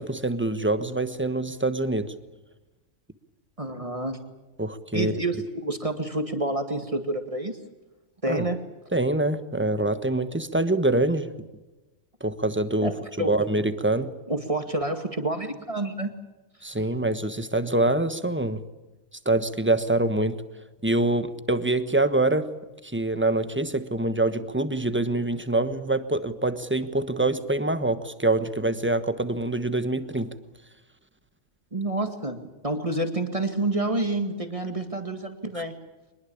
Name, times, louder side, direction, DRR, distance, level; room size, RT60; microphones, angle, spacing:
voice 1, 0.0-2.1 4.6-5.1 8.3-8.4 8.9-11.3 12.2-12.9 13.3-14.1 16.6-18.6 19.2-20.4 20.8-22.5 22.8-30.3, right 2 dB, 10° right, 11 dB, 1.2 m, -25 dB
voice 2, 3.6-4.2 4.9-7.6 8.2-8.6 12.8-13.3 14.3-16.1 31.7-35.8, right 2 dB, 25° right, 7 dB, 2.1 m, -28 dB
23.5 x 21.5 x 8.7 m, 1.1 s
omnidirectional pair, 1.3 m